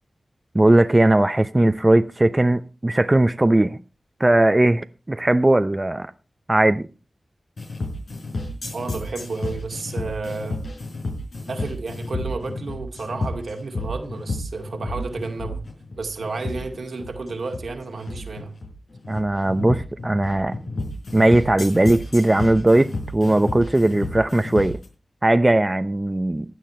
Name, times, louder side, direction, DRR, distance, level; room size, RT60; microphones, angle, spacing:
voice 1, 0.5-3.8 4.2-6.1 6.5-6.8 19.1-20.6 21.1-24.8 25.2-26.4, right 1 dB, 30° right, 0.7 m, -18 dB
sound 1, 7.6-24.9, left 2 dB, 85° left, 4.9 m, -31 dB
voice 2, 8.7-10.6 11.5-15.6 16.0-18.5, right 3 dB, 85° right, 2.2 m, -31 dB
16.0 x 10.0 x 4.3 m
cardioid pair, 45°, 0 cm